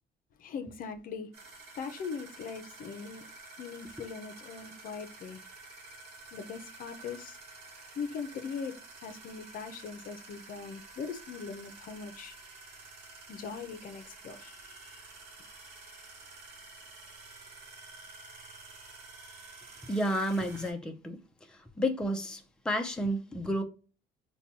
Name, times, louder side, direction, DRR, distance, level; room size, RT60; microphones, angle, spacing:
voice 1, 0.4-3.3 3.6-5.4 6.3-7.4 7.9-12.3 13.3-15.0, left 5 dB, 55° left, 0.6 m, -41 dB
sound 1, 1.3-20.7, right 3 dB, 80° right, 1.1 m, -50 dB
voice 2, 19.9-21.2 21.5-23.6, equal, 5° left, 0.5 m, -31 dB
3.8 x 2.3 x 2.8 m
cardioid pair, 110°, 17 cm